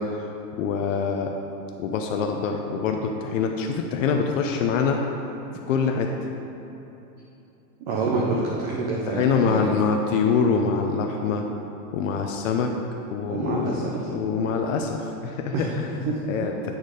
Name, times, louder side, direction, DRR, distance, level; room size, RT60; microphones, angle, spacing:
voice 1, 0.0-1.3 1.8-5.0 5.7-6.1 9.1-11.4 11.9-12.7 13.1-13.8 14.1-16.7, left 5 dB, 50° left, 3 dB, 0.6 m, -25 dB
voice 2, 7.8-9.6 13.3-13.9 15.5-15.7 16.1-16.5, right 3 dB, 35° right, -3 dB, 0.7 m, -27 dB
8.6 x 4.0 x 4.9 m, 2.9 s
supercardioid pair, 145°, 49 cm